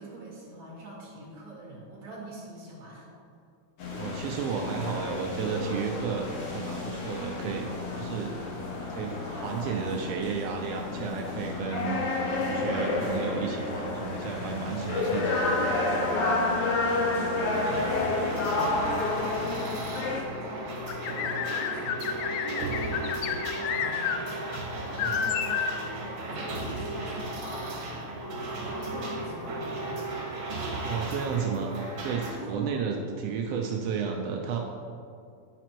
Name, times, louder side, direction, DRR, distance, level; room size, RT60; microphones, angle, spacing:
voice 1, 0.0-3.1 16.8-20.8 21.0-29.9 32.4-32.9, right 1 dB, 30° right, -6 dB, 2.2 m, -43 dB
sound 1, 3.8-20.2, left 2 dB, 55° left, 1.9 m, -30 dB
voice 2, 4.0-7.7 7.9-8.3 8.9-12.0 12.3-15.9 25.0-25.2 30.8-31.7 32.0-34.6, right 6 dB, 85° right, 2 dB, 1.4 m, -32 dB
sound 2, 17.5-32.3, right 2 dB, 60° right, 2.3 m, -35 dB
sound 3, 20.9-24.2 24.5-24.6 25.0-25.8, left 8 dB, 80° left, 1.6 m, -30 dB
10.0 x 5.0 x 4.5 m, 2.4 s
omnidirectional pair, 3.5 m